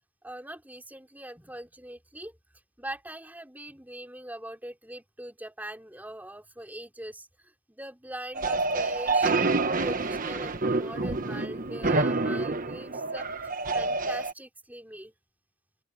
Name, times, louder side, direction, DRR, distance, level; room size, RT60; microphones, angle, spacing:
voice 1, 0.2-2.4 2.8-15.1, right 1 dB, 10° right, 4.4 m, -42 dB
sound 1, 8.4-14.3, right 3 dB, 45° right, 1.3 m, -27 dB
open air
head